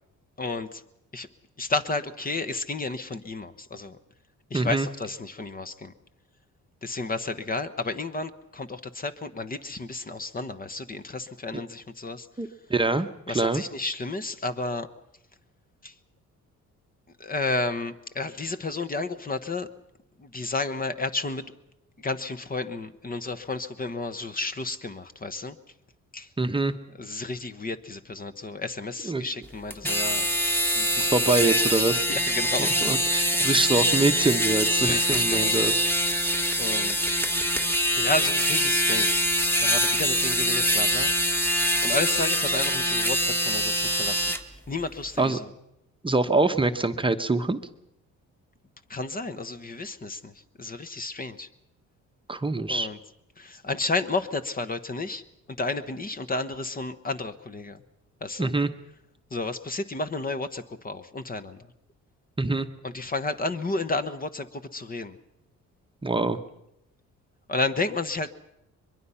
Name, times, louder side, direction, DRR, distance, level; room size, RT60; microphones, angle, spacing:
voice 1, 0.4-0.8 1.1-1.3 1.6-4.0 4.5-5.9 6.8-12.3 13.3-14.9 15.8-15.9 17.2-19.7 20.2-21.4 22.0-25.6 26.1-26.3 27.0-30.2 30.6-31.6 32.1-33.1 33.6-33.7 34.8-35.6 36.6-37.1 38.0-39.2 39.6-41.5 41.8-44.3 44.7-45.5 48.9-51.5 52.7-53.0 53.4-55.2 55.5-57.8 58.2-58.5 59.3-61.7 62.8-65.2 67.5-68.3, left 3 dB, 30° left, 11 dB, 1.1 m, -32 dB
voice 2, 4.5-4.9 12.4-13.6 26.4-26.7 29.0-29.3 31.0-32.1 32.6-35.7 36.0-36.2 45.2-45.4 46.0-47.6 52.3-52.9 58.4-58.7 62.4-62.7 66.0-66.4, right 3 dB, 15° right, 7 dB, 0.9 m, -25 dB
sound 1, 29.7-44.4, equal, 5° left, 1.6 m, -24 dB
22.5 x 22.5 x 5.7 m, 0.84 s
cardioid pair, 90°, 30 cm